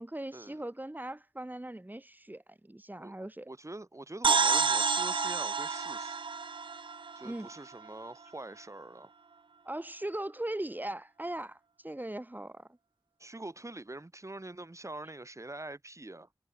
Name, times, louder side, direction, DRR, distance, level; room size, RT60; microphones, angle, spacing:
voice 1, 0.0-3.5 7.2-7.5 9.6-12.7, right 1 dB, 20° right, 5.2 m, -39 dB
voice 2, 3.5-6.2 7.1-9.1 13.2-16.3, right 2 dB, 40° right, 5.8 m, -44 dB
sound 1, 4.2-7.9, right 5 dB, 90° right, 0.6 m, -29 dB
wide cardioid pair, 70°, 8 cm